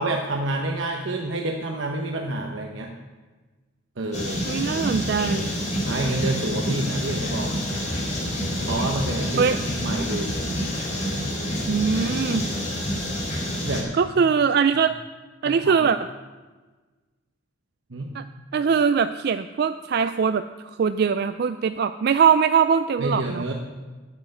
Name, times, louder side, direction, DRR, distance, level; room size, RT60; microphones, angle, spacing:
voice 1, 0.0-2.9 4.0-4.5 5.8-7.5 8.7-10.3 13.6-13.9 15.4-15.7 17.9-18.1 23.0-23.5, right 2 dB, 75° right, 1 dB, 1.0 m, -28 dB
sound 1, 4.1-13.8, equal, 35° left, 4.0 m, -28 dB
voice 2, 4.4-5.5 9.4-9.6 11.7-12.4 13.9-14.9 15.4-16.0 18.1-18.2 18.5-20.4 20.8-23.4, right 6 dB, 55° right, 11 dB, 0.3 m, -21 dB
9.0 x 8.0 x 9.2 m, 1.3 s
head